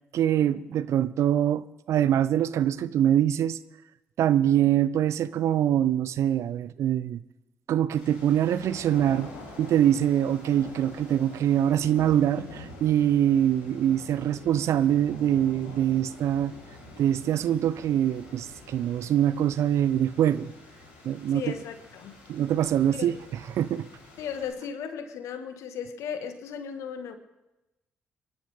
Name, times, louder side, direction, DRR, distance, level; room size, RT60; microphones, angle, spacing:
voice 1, 0.1-3.6 4.2-7.2 7.7-9.3 9.6-16.5 17.0-20.5 21.0-21.4 22.3-23.2 23.6-23.9, right 10 dB, 65° right, 16 dB, 0.5 m, -24 dB
sound 1, 8.0-24.5, left 2 dB, 90° left, 2.9 m, -46 dB
voice 2, 21.3-22.2 22.9-23.2 24.2-27.2, left 7 dB, 70° left, 8 dB, 1.5 m, -36 dB
27.0 x 11.5 x 3.5 m, 0.99 s
hypercardioid pair, 45°, 5 cm